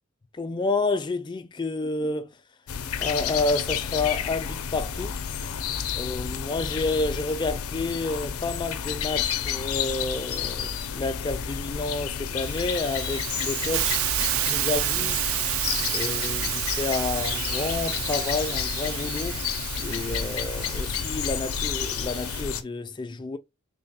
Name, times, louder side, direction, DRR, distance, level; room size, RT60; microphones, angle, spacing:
voice 1, 0.3-2.3 3.0-5.2 5.9-14.0 14.5-15.3 15.9-19.4 19.8-23.4, left 3 dB, 20° left, 0.3 m, -29 dB
sound 1, 2.7-22.6, left 7 dB, 90° left, 0.4 m, -31 dB
Hiss, 12.4-22.4, right 14 dB, 70° right, 0.3 m, -30 dB
3.3 x 2.2 x 4.0 m
head